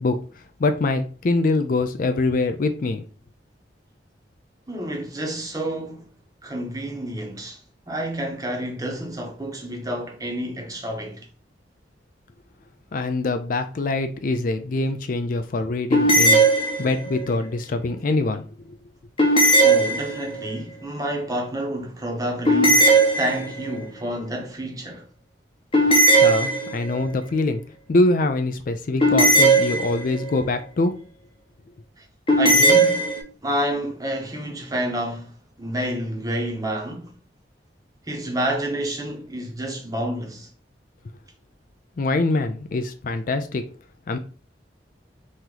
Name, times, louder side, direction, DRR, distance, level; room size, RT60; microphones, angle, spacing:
voice 1, 0.0-3.0 12.9-16.4 16.8-18.8 26.1-27.6 27.9-30.9 42.0-43.6 44.1-44.2, left 2 dB, 45° left, 0.4 m, -24 dB
voice 2, 4.7-6.1 6.4-7.6 7.9-11.2 19.6-25.0 32.0-32.1 32.4-33.1 33.4-35.3 35.6-37.1 38.1-40.5, right 1 dB, 20° right, 0.8 m, -29 dB
sound 1, 15.9-17.2 19.2-20.5 22.5-23.8 25.7-27.0 29.0-30.3 32.3-33.2, right 2 dB, 30° left, 0.9 m, -17 dB
3.1 x 2.8 x 3.7 m
head